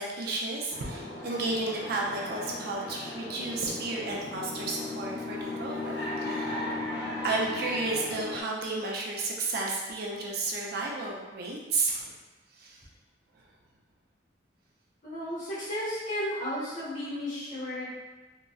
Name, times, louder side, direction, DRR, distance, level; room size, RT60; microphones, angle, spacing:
voice 1, 0.0-6.7 7.2-12.1 12.6-12.8, right 3 dB, 60° right, -2 dB, 0.5 m, -32 dB
sound 1, 0.7-8.4, left 2 dB, 70° left, 0.7 m, -36 dB
voice 2, 15.0-17.9, equal, 45° left, -9 dB, 1.2 m, -33 dB
3.8 x 2.1 x 2.3 m, 1.2 s
head